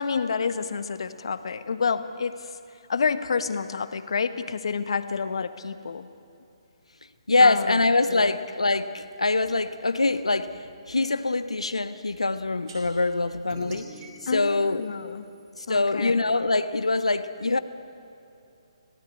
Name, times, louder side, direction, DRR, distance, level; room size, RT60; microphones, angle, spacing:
voice 1, 0.0-2.5 2.9-6.1 7.4-7.8 8.1-8.4 14.3-15.2 15.7-16.2, left 5 dB, 60° left, 11 dB, 1.3 m, -29 dB
voice 2, 7.3-13.9 14.2-14.9 15.6-17.6, left 3 dB, 80° left, 11 dB, 1.2 m, -24 dB
sound 1, 12.7-12.8 13.5-15.7, right 1 dB, 40° right, 6.3 m, -45 dB
26.0 x 17.0 x 8.4 m, 2.7 s
figure-of-eight pair, 140°, 3 cm